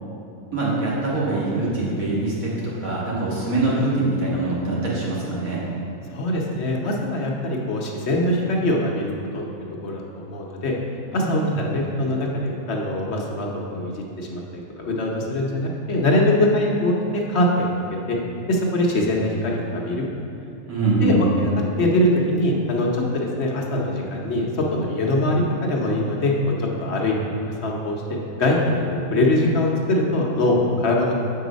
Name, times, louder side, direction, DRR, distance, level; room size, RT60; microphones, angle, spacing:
voice 1, 0.5-5.6 11.2-11.6 18.9-19.0 20.7-21.2, right 2 dB, 85° right, -7 dB, 2.2 m, -23 dB
voice 2, 6.1-9.4 9.8-10.7 11.1-17.7 18.1-18.2 18.5-20.0 21.0-21.5 21.8-27.3 27.6-31.1, left 1 dB, 55° left, -1 dB, 1.1 m, -23 dB
7.3 x 4.8 x 5.1 m, 2.8 s
omnidirectional pair, 1.4 m